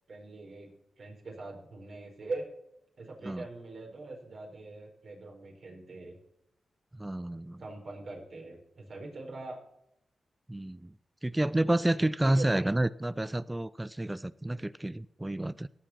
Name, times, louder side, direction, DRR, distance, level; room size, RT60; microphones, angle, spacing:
voice 1, 0.1-0.7 1.0-2.4 3.0-6.2 7.6-9.6 12.2-12.5, right 3 dB, 65° right, 1 dB, 4.6 m, -42 dB
voice 2, 7.0-7.6 10.5-10.9 11.2-15.7, right 1 dB, 20° right, 16 dB, 0.5 m, -29 dB
17.5 x 7.3 x 4.3 m, 0.77 s
supercardioid pair, 40°, 0 cm